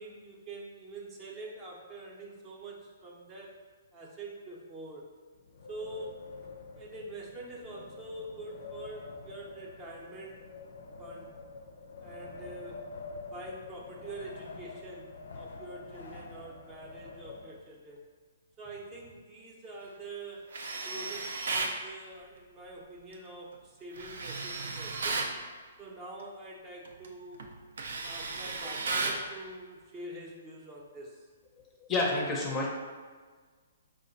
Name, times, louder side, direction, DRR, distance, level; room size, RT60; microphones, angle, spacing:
voice 1, 0.0-3.6 3.9-5.1 5.7-6.2 6.7-10.5 11.0-11.4 12.0-12.8 13.3-18.0 18.6-20.5 20.8-25.3 25.8-27.5 28.0-31.3, right 2 dB, 20° right, -2 dB, 0.7 m, -45 dB
Wind, 5.3-18.0, left 3 dB, 75° left, 0.5 m, -46 dB
Tools, 20.5-21.8 24.0-25.3 26.8-27.1 27.4-29.3, right 3 dB, 75° right, 0.5 m, -34 dB
voice 2, 31.6-32.7, left 2 dB, 20° left, -1 dB, 0.6 m, -30 dB
4.8 x 2.1 x 3.9 m, 1.5 s
hypercardioid pair, 150°, 0 cm